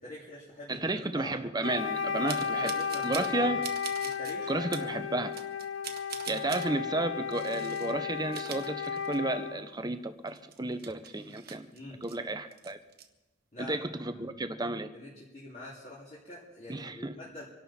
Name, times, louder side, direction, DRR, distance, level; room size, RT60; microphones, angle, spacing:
voice 1, 0.0-1.3 2.2-3.6 4.0-4.5 4.8-4.9 11.7-12.0 13.5-13.8 14.0-14.4 14.9-17.4, left 1 dB, 40° left, -6 dB, 2.8 m, -45 dB
voice 2, 0.7-2.7 3.0-3.6 4.5-5.3 6.3-11.7 12.0-12.8 13.7-14.9 16.7-17.1, right 2 dB, 20° right, 9 dB, 0.8 m, -32 dB
Wind instrument woodwind instrument, 1.6-9.6, left 6 dB, 85° left, 0.8 m, -34 dB
sound 1, 2.3-3.4 3.6-4.4 4.7-4.9 5.3-6.7 7.3-7.9 8.2-9.4 9.7-9.8 10.3-12.2 12.5-13.0, right 8 dB, 50° right, 1.2 m, -43 dB
26.5 x 11.5 x 4.3 m, 1.1 s
head